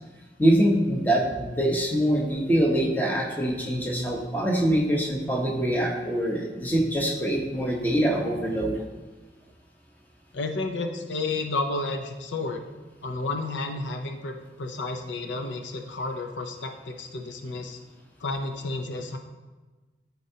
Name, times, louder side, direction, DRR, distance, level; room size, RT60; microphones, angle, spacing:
voice 1, 0.4-8.8, right 1 dB, 10° left, -1 dB, 0.9 m, -24 dB
voice 2, 10.3-12.6 13.0-17.8 18.2-19.2, left 3 dB, 85° left, 5 dB, 0.7 m, -31 dB
12.5 x 4.4 x 2.8 m, 1.2 s
head